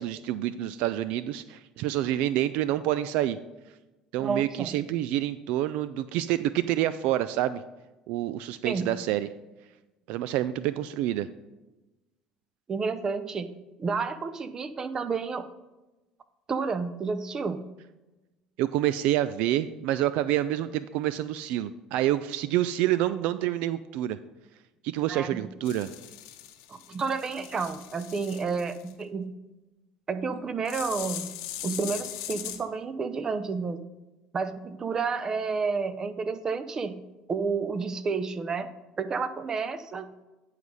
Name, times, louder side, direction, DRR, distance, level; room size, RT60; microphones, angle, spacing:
voice 1, 0.0-3.4 4.1-7.6 8.1-9.3 10.1-11.3 18.6-24.2 24.8-25.9, right 13 dB, 70° right, 14 dB, 0.3 m, -27 dB
voice 2, 4.2-4.7 8.6-8.9 12.7-13.5 13.8-15.5 16.5-17.6 25.1-25.5 26.7-29.3 30.1-31.3 31.6-33.8 34.3-37.0 37.3-38.7 39.0-40.1, right 4 dB, 30° right, 12 dB, 0.6 m, -30 dB
sound 1, 25.6-28.9 30.6-32.6, left 12 dB, 90° left, 0.9 m, -39 dB
9.7 x 4.8 x 5.3 m, 1.1 s
supercardioid pair, 105°, 2 cm